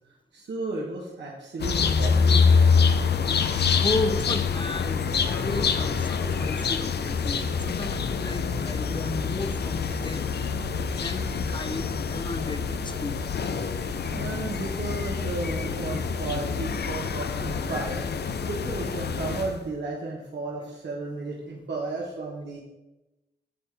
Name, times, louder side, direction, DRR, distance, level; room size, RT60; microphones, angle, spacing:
voice 1, 0.3-2.8 13.8-18.1 18.4-22.6, right 3 dB, 80° right, -3 dB, 1.3 m, -34 dB
sound 1, 1.6-19.6, left 5 dB, 70° left, 0.6 m, -26 dB
voice 2, 3.3-10.3 10.9-11.8 12.1-13.2, left 2 dB, 25° left, 10 dB, 0.7 m, -34 dB
8.6 x 7.3 x 3.5 m, 1.0 s
cardioid pair, 60°, 18 cm